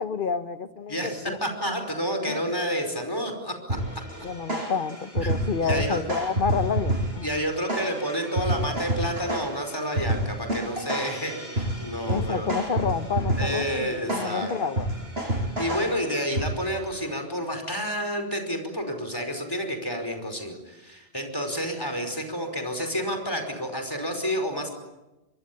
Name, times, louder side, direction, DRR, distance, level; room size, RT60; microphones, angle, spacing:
voice 1, 0.0-1.4 2.2-2.5 4.2-7.3 12.0-14.9, left 5 dB, 55° left, 11 dB, 1.3 m, -29 dB
voice 2, 0.9-3.8 5.2-5.3 5.6-6.0 7.2-12.5 13.4-14.5 15.6-24.7, equal, 20° left, 5 dB, 5.2 m, -30 dB
sound 1, 3.7-16.9, right 1 dB, 75° right, 7.4 m, -30 dB
25.0 x 23.5 x 8.8 m, 1.0 s
omnidirectional pair, 1.0 m